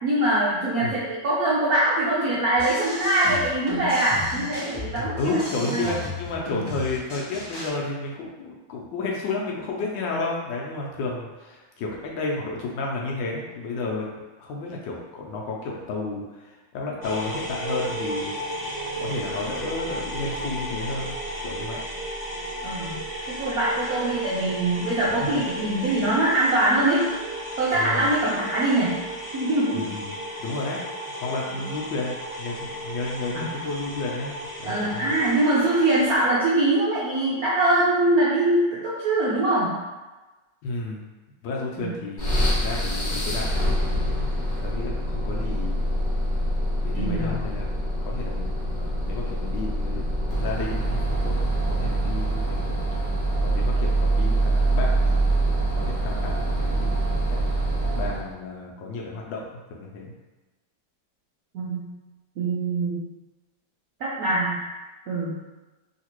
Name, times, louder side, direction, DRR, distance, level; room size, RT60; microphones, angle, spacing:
voice 1, 0.0-6.0 22.6-23.0 23.3-27.1 27.6-28.9 29.3-29.8 33.3-33.6 34.6-39.7 41.8-41.9 46.9-47.4 61.5-61.8 62.4-63.0 64.0-64.6 65.1-65.3, right 1 dB, 75° right, -8 dB, 0.8 m, -23 dB
sound 1, 2.5-7.7, left 2 dB, 30° left, 0.4 m, -35 dB
voice 2, 5.2-14.1 14.4-18.3 19.0-21.1 21.4-21.8 27.7-28.1 29.7-30.8 31.2-35.1 40.6-41.0 41.4-45.8 46.8-47.7 48.0-50.0 50.3-51.4 51.6-52.8 53.4-55.3 55.7-56.9 57.8-60.1, left 3 dB, 75° left, -2 dB, 1.2 m, -32 dB
sound 2, 17.0-36.2, right 1 dB, 40° right, 0.4 m, -34 dB
sound 3, 42.2-58.3, right 1 dB, 50° left, 0.8 m, -25 dB
3.2 x 2.8 x 2.9 m, 1.2 s
omnidirectional pair, 2.2 m